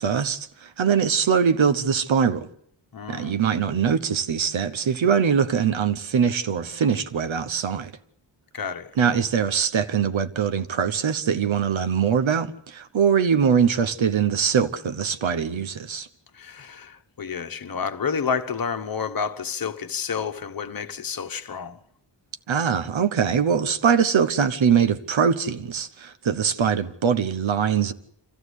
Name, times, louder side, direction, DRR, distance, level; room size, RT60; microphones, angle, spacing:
voice 1, 0.0-2.5 3.1-7.9 9.0-16.1 22.5-27.9, right 7 dB, 80° right, 1.2 m, -22 dB
voice 2, 2.9-3.4 8.5-8.9 16.3-21.8, left 6 dB, 50° left, 1.2 m, -30 dB
26.0 x 15.0 x 8.2 m
wide cardioid pair, 155°, 47 cm